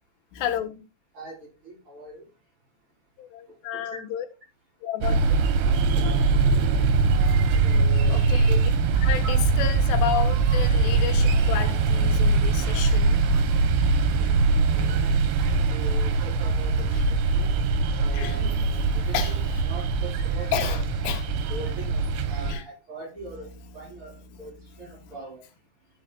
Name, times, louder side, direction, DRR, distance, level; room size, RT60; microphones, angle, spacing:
voice 1, 0.3-0.7 3.2-4.3 4.8-5.4 6.6-6.7 7.0-7.1 8.1-13.2 16.9-17.0 18.1-19.6 20.5-21.3 22.5-22.7 23.3-25.2, left 10 dB, 85° left, 3.2 m, -33 dB
voice 2, 1.1-2.2 3.7-4.0 5.7-6.8 7.6-8.6 9.2-9.7 14.8-15.0 15.7-17.5 18.0-19.2 19.7-20.7 21.5-23.5 23.7-25.4, right 1 dB, 30° right, 4.6 m, -41 dB
sound 1, 5.0-22.6, right 4 dB, 85° right, 3.1 m, -22 dB
16.0 x 5.6 x 2.3 m
omnidirectional pair, 4.9 m